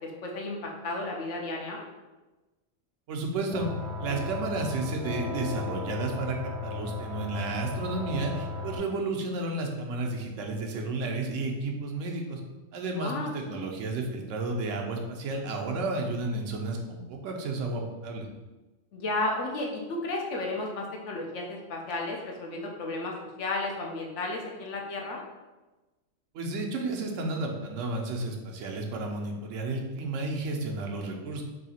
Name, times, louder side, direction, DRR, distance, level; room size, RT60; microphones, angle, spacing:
voice 1, 0.0-1.8 12.8-13.7 18.9-25.2, left 2 dB, 75° left, 0 dB, 1.0 m, -33 dB
voice 2, 3.1-3.7 4.0-12.4 12.7-18.3 26.3-31.4, right 2 dB, 85° right, 1 dB, 1.0 m, -32 dB
sound 1, 3.5-8.8, left 3 dB, 30° left, 0.7 m, -35 dB
3.2 x 2.7 x 4.2 m, 1.1 s
omnidirectional pair, 1.3 m